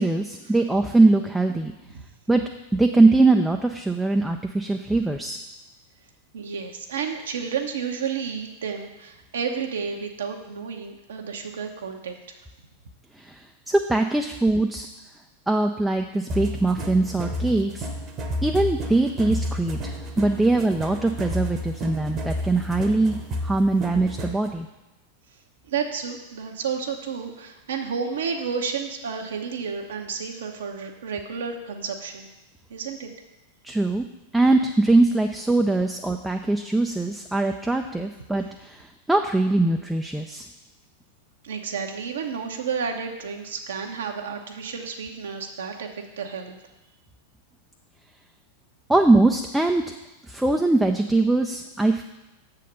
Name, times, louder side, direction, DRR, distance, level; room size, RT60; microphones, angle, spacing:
voice 1, 0.0-1.7 2.3-2.4 2.7-5.4 13.7-14.9 15.5-17.9 18.4-23.2 23.4-24.7 33.6-34.0 34.3-38.8 39.1-40.5 48.9-49.8 50.3-52.0, right 2 dB, 5° right, 3 dB, 0.4 m, -21 dB
voice 2, 6.3-12.2 25.7-32.3 32.7-33.1 41.4-46.6, right 6 dB, 65° right, 2 dB, 0.9 m, -31 dB
sound 1, 16.3-24.5, equal, 30° right, 1.0 m, -31 dB
7.3 x 4.1 x 6.7 m, 1.0 s
figure-of-eight pair, 90°, 0 cm